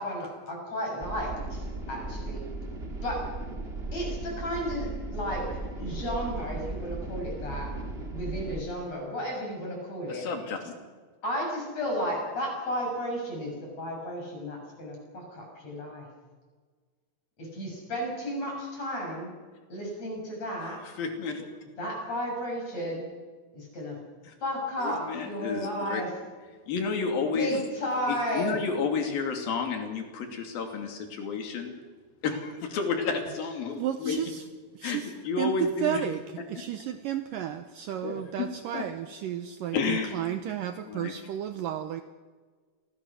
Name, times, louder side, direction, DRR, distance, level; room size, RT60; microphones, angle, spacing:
voice 1, 0.0-1.6 1.9-2.5 3.0-3.3 3.9-7.7 8.1-10.3 11.2-16.1 17.4-19.3 19.7-20.8 21.8-23.0 23.5-24.0 24.4-26.1 27.3-28.6, equal, 40° left, -1 dB, 8.7 m, -33 dB
sound 1, 1.0-8.6, right 2 dB, 20° right, 1.8 m, -36 dB
voice 2, 10.1-10.7 21.0-21.5 24.3-24.4 24.8-26.0 26.7-27.6 28.1-31.8 32.2-34.2 34.8-36.0 38.0-38.5 38.7-38.9 39.7-40.2 40.9-41.1, left 5 dB, 60° left, 4 dB, 4.4 m, -31 dB
voice 3, 33.8-34.4 34.8-35.1 35.4-35.5 35.8-36.2 36.5-42.0, right 10 dB, 75° right, 9 dB, 2.0 m, -32 dB
28.0 x 20.5 x 6.3 m, 1.5 s
omnidirectional pair, 4.8 m